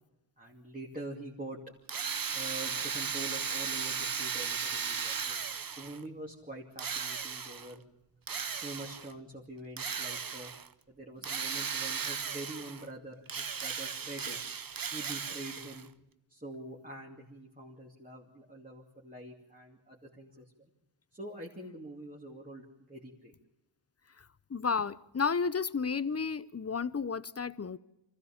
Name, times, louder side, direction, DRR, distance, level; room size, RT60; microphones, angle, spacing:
voice 1, 0.4-1.6 2.3-5.4 5.8-7.8 8.4-10.5 10.9-14.4 14.9-15.9 16.3-20.7 21.1-23.3, right 1 dB, 15° right, 2.8 m, -45 dB
Drill, 1.9-6.0 6.8-7.7 8.3-9.1 9.8-10.7 11.2-12.9 13.3-15.9, right 6 dB, 45° right, 0.9 m, -36 dB
voice 2, 24.5-27.8, left 5 dB, 30° left, 0.7 m, -32 dB
24.5 x 15.5 x 7.2 m
wide cardioid pair, 80°, 46 cm